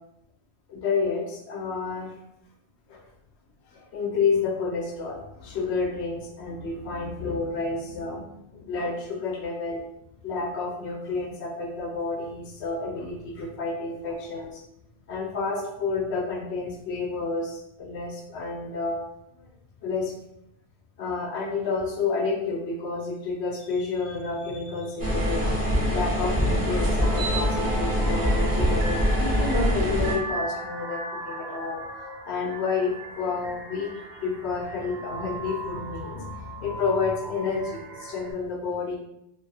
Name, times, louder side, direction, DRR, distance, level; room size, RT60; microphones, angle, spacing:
voice 1, 0.7-2.1 2.9-3.0 3.7-9.8 10.2-14.6 15.1-19.0 19.4-19.5 19.8-20.1 21.0-31.8 32.3-39.0, left 4 dB, 80° left, 1 dB, 0.9 m, -30 dB
sound 1, 25.0-30.1, equal, 25° right, 0.6 m, -24 dB
sound 2, 27.0-38.3, right 2 dB, 70° right, 0.8 m, -38 dB
2.5 x 2.3 x 2.6 m, 0.81 s
omnidirectional pair, 1.1 m